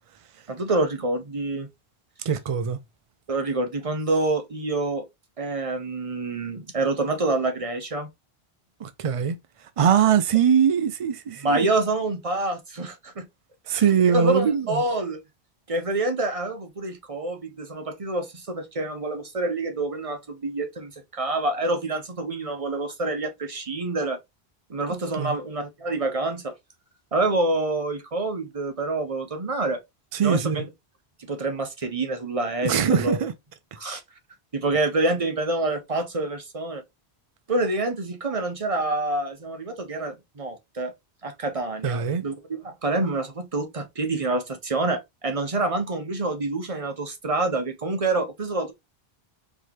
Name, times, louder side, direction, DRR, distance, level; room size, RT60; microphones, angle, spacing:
voice 1, 0.5-1.7 3.3-5.0 5.4-8.1 11.4-13.3 13.7-15.2 15.7-24.2 24.7-26.5 27.1-29.8 30.2-30.7 31.2-33.2 33.8-34.0 34.5-36.8 37.5-40.9 41.2-48.7, right 2 dB, 35° right, 0.9 m, -27 dB
voice 2, 2.3-2.8 8.8-9.4 9.8-11.7 13.7-14.8 25.2-25.3 30.1-30.6 32.6-33.3 41.8-42.2, right 7 dB, 60° right, 0.3 m, -22 dB
4.6 x 3.0 x 2.9 m
omnidirectional pair, 1.1 m